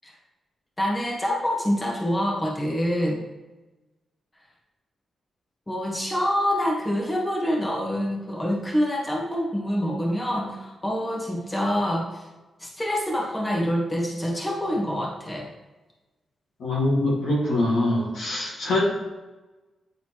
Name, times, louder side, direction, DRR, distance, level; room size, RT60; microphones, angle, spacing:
voice 1, 0.8-3.3 5.7-12.2 12.6-15.5, equal, 20° left, -2 dB, 1.5 m, -26 dB
voice 2, 16.6-18.8, left 1 dB, 80° left, -4 dB, 2.0 m, -23 dB
8.9 x 3.9 x 3.1 m, 1.1 s
cardioid pair, 80°, 0 cm